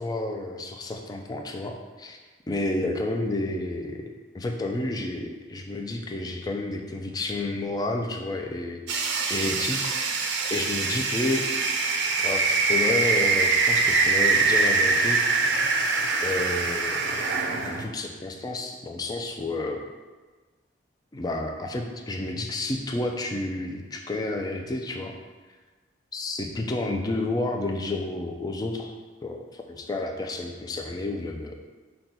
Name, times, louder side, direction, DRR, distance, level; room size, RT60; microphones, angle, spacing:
voice 1, 0.0-2.2 2.5-4.1 4.3-9.9 10.5-11.4 12.2-15.2 16.2-17.2 17.6-19.8 21.1-25.1 26.1-28.9 29.2-31.6, left 2 dB, 20° left, 2 dB, 0.4 m, -30 dB
sound 1, 8.9-17.8, right 4 dB, 70° right, 0.5 m, -24 dB
5.7 x 2.3 x 3.9 m, 1.3 s
head